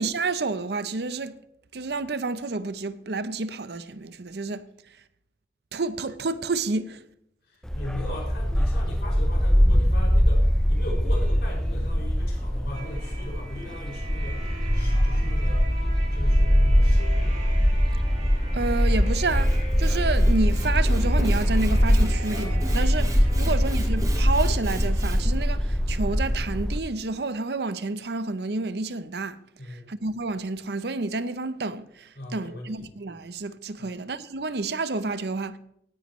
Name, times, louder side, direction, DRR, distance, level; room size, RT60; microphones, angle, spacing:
voice 1, 0.0-1.4 1.7-4.6 5.7-7.0 18.5-29.4 29.9-35.6, right 3 dB, 75° right, 0.7 m, -29 dB
voice 2, 7.4-15.7 16.1-17.5 29.6-29.9 32.1-32.8 33.8-34.0, left 1 dB, 75° left, 5.8 m, -39 dB
Bark, 7.6-26.8, equal, 5° left, 0.5 m, -22 dB
sound 1, 12.7-25.4, right 2 dB, 45° right, 5.7 m, -42 dB
Sawing / Wood, 19.2-25.4, right 1 dB, 20° right, 1.1 m, -36 dB
17.5 x 9.6 x 3.1 m
head